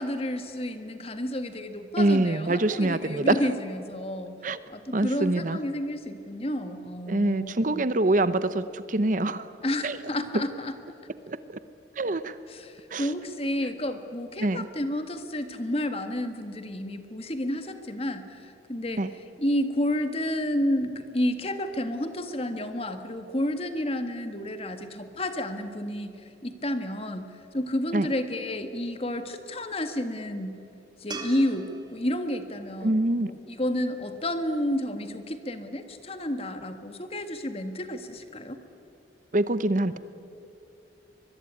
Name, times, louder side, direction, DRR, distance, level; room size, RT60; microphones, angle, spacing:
voice 1, 0.0-4.4 4.7-7.8 9.6-10.7 12.5-19.0 19.4-26.1 26.4-30.6 31.0-38.6, left 1 dB, 30° left, 8 dB, 1.7 m, -31 dB
voice 2, 2.0-3.4 4.4-4.6 4.9-5.6 7.1-9.5 9.8-10.0 10.3-10.4 11.3-11.6 12.0-12.4 12.9-13.1 14.4-14.7 19.0-19.1 27.9-28.1 32.8-33.3 39.3-40.0, right 2 dB, 45° right, 14 dB, 0.8 m, -25 dB
sound 1, 31.1-34.3 37.6-37.7, right 3 dB, 25° right, 2.6 m, -44 dB
23.5 x 22.5 x 9.6 m, 2.7 s
head